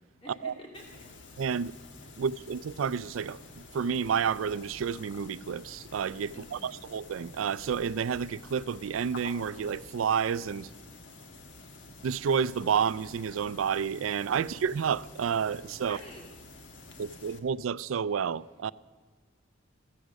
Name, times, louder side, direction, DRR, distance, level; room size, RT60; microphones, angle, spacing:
voice 1, 0.2-0.8 6.3-6.7 15.9-16.3 16.6-17.0, equal, 30° left, 2.4 m, -49 dB
sound 1, 0.7-17.4, left 2 dB, 70° left, 1.5 m, -49 dB
voice 2, 1.4-1.7 2.2-10.7 12.0-16.0 17.0-18.7, right 7 dB, 90° right, 0.4 m, -30 dB
15.0 x 14.5 x 6.3 m
head